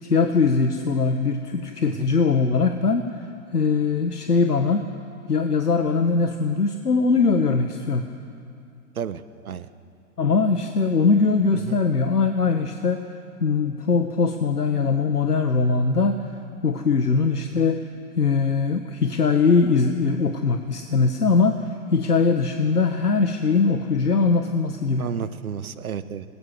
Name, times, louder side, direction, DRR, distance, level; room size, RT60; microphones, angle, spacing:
voice 1, 0.0-3.2 3.5-4.8 5.3-8.1 10.2-13.1 13.4-16.3 16.6-17.9 18.1-25.1, left 4 dB, 90° left, 6 dB, 1.6 m, -21 dB
voice 2, 8.9-9.7 11.5-11.8 25.0-26.2, right 8 dB, 70° right, 13 dB, 1.4 m, -32 dB
28.0 x 21.0 x 7.8 m, 2.5 s
figure-of-eight pair, 120°, 45 cm